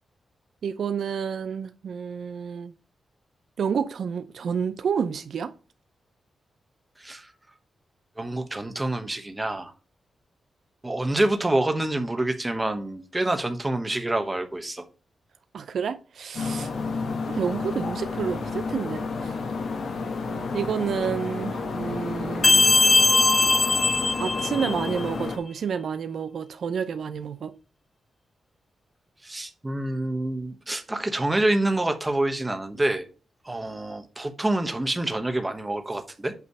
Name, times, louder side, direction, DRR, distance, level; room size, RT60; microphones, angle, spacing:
voice 1, 0.6-2.7 3.6-5.5 15.5-16.7 17.3-19.4 20.5-22.7 24.2-27.5, right 7 dB, 65° right, 0.5 m, -29 dB
voice 2, 8.2-9.7 10.8-14.8 16.7-16.9 29.2-33.1 33.4-36.3, right 1 dB, 15° right, 1.1 m, -27 dB
sound 1, 16.3-25.4, left 4 dB, 65° left, 1.3 m, -31 dB
sound 2, 22.4-25.0, left 3 dB, 30° left, 0.7 m, -20 dB
8.3 x 3.1 x 5.3 m
wide cardioid pair, 145°, 0 cm